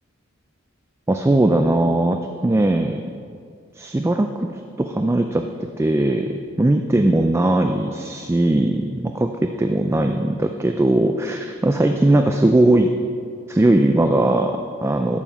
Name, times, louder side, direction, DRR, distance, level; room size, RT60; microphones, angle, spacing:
voice 1, 1.1-2.2 2.4-3.0 3.8-4.5 4.8-5.4 5.8-12.9 13.5-15.2, right 1 dB, 15° right, 5 dB, 0.3 m, -19 dB
12.5 x 4.7 x 5.5 m, 2.2 s
head